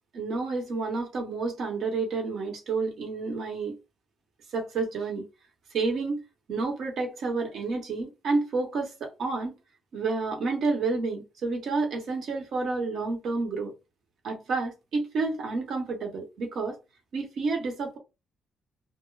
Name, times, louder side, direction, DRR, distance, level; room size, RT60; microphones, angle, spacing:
voice 1, 0.1-3.8 4.5-5.2 5.7-6.2 6.5-9.5 9.9-13.7 14.2-16.8 17.1-18.0, right 3 dB, 65° right, 1.0 m, -30 dB
2.3 x 2.1 x 3.0 m
cardioid pair, 120°, 0 cm